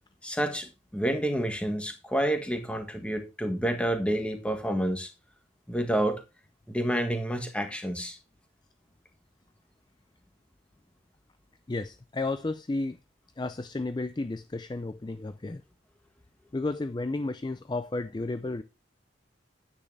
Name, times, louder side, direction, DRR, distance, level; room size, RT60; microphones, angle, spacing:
voice 1, 0.2-5.1 5.7-6.2 6.7-8.2, right 1 dB, 5° left, 1.6 m, -29 dB
voice 2, 11.7-13.0 13.4-15.6 16.5-18.6, left 2 dB, 25° left, 0.4 m, -32 dB
10.0 x 8.7 x 3.3 m
head